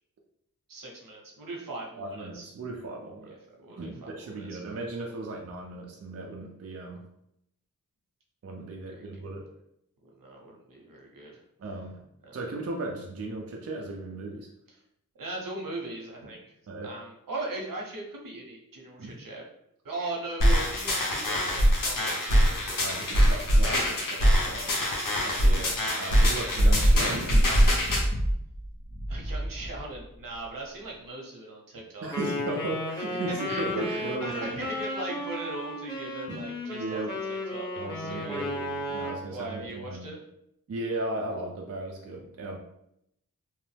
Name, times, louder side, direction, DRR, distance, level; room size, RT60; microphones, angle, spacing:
voice 1, 0.7-2.5 3.2-4.6 9.0-9.1 10.0-11.4 12.2-12.4 15.2-19.4 19.8-22.8 25.4-25.9 26.9-27.4 29.1-32.1 33.5-37.0 37.3-38.5 39.3-40.2, right 2 dB, 75° right, -1 dB, 0.8 m, -39 dB
voice 2, 2.0-3.4 3.7-7.0 8.4-9.5 11.6-14.5 16.7-16.9 19.0-19.2 22.8-25.0 25.2-27.1 32.0-34.5 36.3-36.4 36.8-37.2 37.8-40.1 40.7-42.6, right 2 dB, 45° right, 0 dB, 0.5 m, -36 dB
sound 1, 20.4-28.0, equal, 70° left, 0.9 m, -23 dB
sound 2, 26.5-30.0 30.3-30.4, equal, 30° left, 0.7 m, -31 dB
Wind instrument woodwind instrument, 32.1-39.2, left 1 dB, 15° left, 1.1 m, -34 dB
3.0 x 2.0 x 3.2 m, 0.79 s
wide cardioid pair, 55°, 34 cm